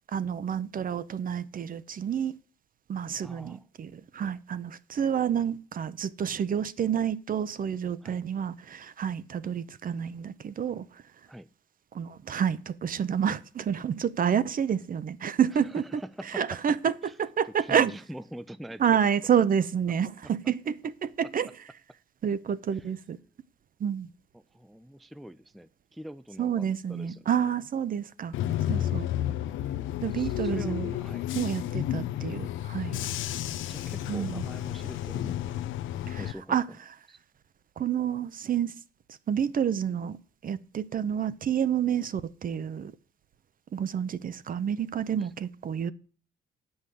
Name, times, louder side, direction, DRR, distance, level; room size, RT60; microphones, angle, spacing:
voice 1, 0.1-2.3 2.9-11.0 11.9-16.0 16.3-16.9 17.2-17.9 18.8-21.5 22.2-23.2 23.8-24.1 26.4-28.3 28.7-29.1 30.0-30.9 31.4-33.0 34.1-34.4 36.1-36.2 36.5-36.7 37.8-38.7 39.3-40.2 40.4-42.9 43.7-45.9, right 8 dB, 45° right, 0.6 m, -29 dB
voice 2, 3.2-3.6 8.0-8.2 11.3-11.5 15.7-16.4 16.7-16.8 17.0-17.1 17.6-19.0 24.3-27.2 28.4-28.9 30.1-31.3 33.0-35.6 36.2-36.6 37.1-37.2 45.2-45.3, equal, ahead, 0.4 m, -44 dB
Bus / Engine, 28.3-36.3, left 12 dB, 80° left, 0.6 m, -31 dB
8.3 x 5.6 x 7.8 m
cardioid pair, 90°, 20 cm